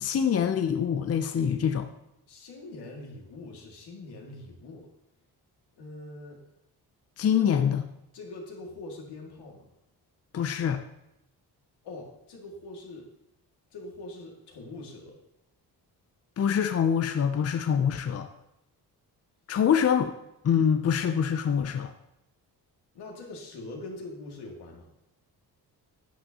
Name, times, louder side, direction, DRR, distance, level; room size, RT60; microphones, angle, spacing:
voice 1, 0.0-1.9 7.2-7.8 10.3-10.8 16.4-18.3 19.5-20.1 20.4-21.9, left 8 dB, 40° left, 7 dB, 0.6 m, -25 dB
voice 2, 2.3-4.9 5.8-6.4 7.4-7.6 8.1-9.7 11.8-13.1 13.7-15.2 22.9-24.9, left 2 dB, 80° left, -1 dB, 2.3 m, -43 dB
11.0 x 8.5 x 2.9 m, 0.86 s
cardioid pair, 100°, 39 cm